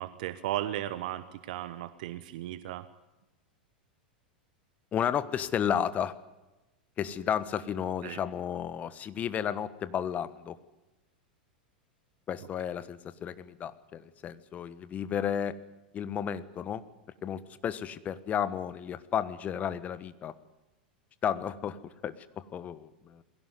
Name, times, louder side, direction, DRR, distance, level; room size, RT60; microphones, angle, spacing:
voice 1, 0.0-2.8 8.0-8.2, right 13 dB, 60° right, 14 dB, 1.1 m, -35 dB
voice 2, 4.9-6.1 7.0-10.6 12.3-15.6 15.9-16.8 17.2-20.3 21.2-23.2, left 8 dB, 30° left, 15 dB, 1.4 m, -33 dB
22.0 x 16.5 x 9.5 m, 1.0 s
figure-of-eight pair, 90°, 5 cm